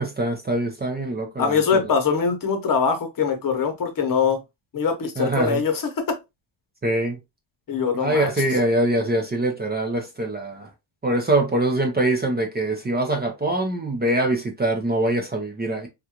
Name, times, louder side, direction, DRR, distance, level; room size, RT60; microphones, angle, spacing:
voice 1, 0.0-1.9 5.2-5.6 6.8-7.2 7.9-10.7 11.0-15.9, right 1 dB, 20° right, 0.6 m, -23 dB
voice 2, 1.4-4.4 4.7-6.2 7.7-8.3, left 6 dB, 45° left, 0.9 m, -23 dB
3.7 x 2.4 x 2.8 m
cardioid pair, 130°, 46 cm